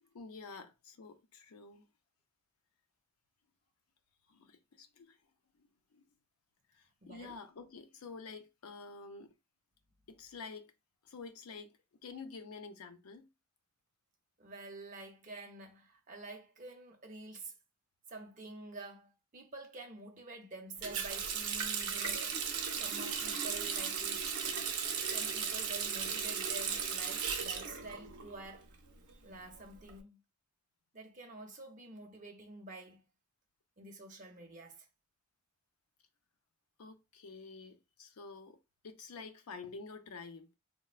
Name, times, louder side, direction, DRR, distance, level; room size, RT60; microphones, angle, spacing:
voice 1, 0.1-1.8 4.3-5.2 5.6-6.0 6.7-9.3 10.1-10.7 11.0-11.7 12.0-13.3 36.8-38.6 38.8-40.5, left 4 dB, 75° left, 0.5 m, -49 dB
voice 2, 7.0-7.4 14.4-17.5 18.1-24.4 25.1-28.8 29.2-30.2 30.9-33.0 33.8-34.9, right 2 dB, 35° right, 0.6 m, -49 dB
Water tap faucet, 20.8-28.6 28.9-29.9, right 6 dB, 80° right, 0.6 m, -36 dB
4.0 x 2.1 x 2.3 m
head